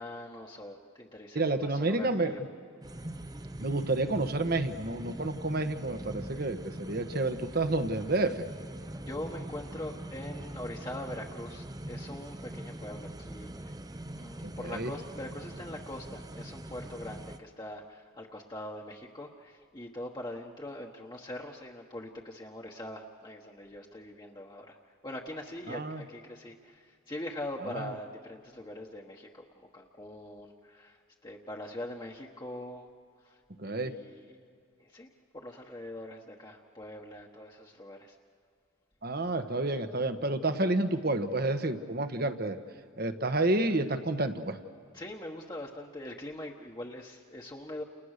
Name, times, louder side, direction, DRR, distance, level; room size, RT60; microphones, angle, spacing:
voice 1, 0.0-2.4 9.0-13.7 14.1-24.8 25.0-32.9 33.2-33.4 33.6-34.2 34.8-35.1 35.3-38.2 44.9-47.8, left 1 dB, 20° left, -1 dB, 1.3 m, -42 dB
voice 2, 1.3-2.3 3.6-8.4 14.4-14.9 25.7-26.0 27.7-27.9 33.6-33.9 39.0-42.6 43.0-44.6, right 2 dB, 50° right, 9 dB, 1.3 m, -30 dB
sound 1, 2.8-17.4, right 1 dB, 20° right, 0.7 m, -42 dB
30.0 x 29.0 x 6.7 m, 2.3 s
head